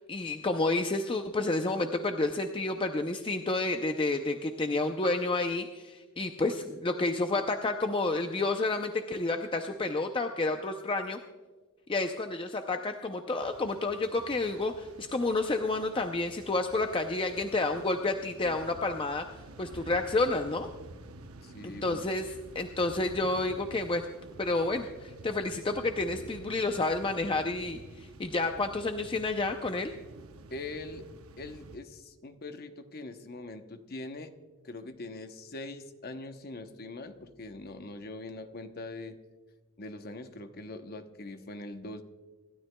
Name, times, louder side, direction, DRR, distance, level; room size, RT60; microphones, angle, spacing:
voice 1, 0.0-11.2 11.9-19.3 19.6-20.7 21.6-24.1 24.4-29.9, left 2 dB, 25° left, 5 dB, 0.5 m, -30 dB
sound 1, 13.4-31.8, right 2 dB, 75° right, 0.8 m, -50 dB
voice 2, 21.4-22.0 30.5-31.1 31.4-34.3 34.6-39.1 39.8-42.0, left 2 dB, 45° left, 7 dB, 0.8 m, -42 dB
26.0 x 12.5 x 2.2 m, 1.4 s
head